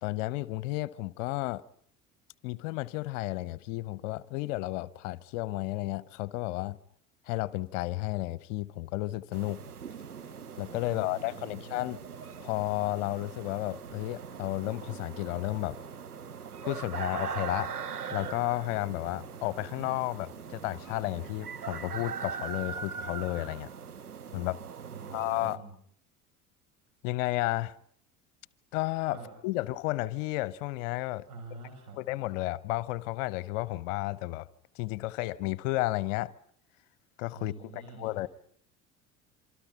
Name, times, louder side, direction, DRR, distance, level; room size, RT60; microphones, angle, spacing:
voice 1, 0.0-1.6 2.4-6.8 7.3-9.6 10.6-12.0 12.4-15.8 16.6-17.7 18.1-23.7 24.3-24.6 25.1-25.6 27.0-27.8 28.7-29.2 29.4-31.3 32.0-34.5 34.7-36.3 37.2-38.3, left 18 dB, 60° left, 0.9 m, -32 dB
sound 1, 9.3-25.6, right 6 dB, 85° right, 0.9 m, -41 dB
voice 2, 10.9-11.8 24.9-25.8 29.1-29.3 29.5-29.6 31.3-32.0 37.3-38.3, right 4 dB, 65° right, 6.1 m, -47 dB
27.0 x 25.5 x 5.6 m
figure-of-eight pair, 65°, 44 cm